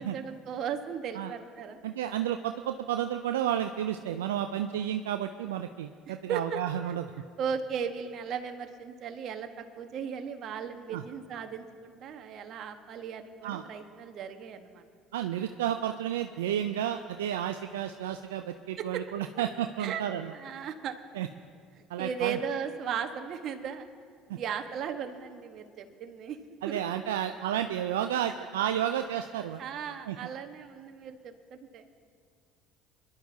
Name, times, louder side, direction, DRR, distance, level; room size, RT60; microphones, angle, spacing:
voice 1, 0.0-1.8 6.1-6.9 7.4-9.5 9.7-14.9 18.8-19.0 19.8-20.0 20.3-21.0 21.8-23.9 24.3-26.4 26.7-26.8 29.6-31.9, right 7 dB, 55° right, 7 dB, 1.2 m, -36 dB
voice 2, 1.8-7.1 10.9-11.0 13.4-13.6 15.1-20.3 21.1-21.3 21.9-22.4 24.3-24.4 26.6-29.6 30.1-30.2, right 10 dB, 85° right, 7 dB, 0.4 m, -31 dB
25.5 x 11.5 x 2.8 m, 2.2 s
hypercardioid pair, 65°, 0 cm